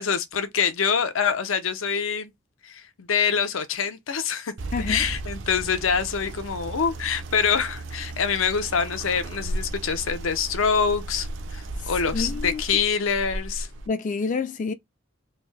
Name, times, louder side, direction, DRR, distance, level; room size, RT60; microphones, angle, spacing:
voice 1, 0.0-2.3 2.6-4.5 4.9-13.7, left 6 dB, 80° left, 0.6 m, -25 dB
sound 1, 4.6-13.9, right 2 dB, 65° right, 0.7 m, -35 dB
voice 2, 4.7-5.1 12.1-12.6 13.9-14.7, left 4 dB, 40° left, 0.3 m, -28 dB
3.4 x 2.6 x 3.3 m
head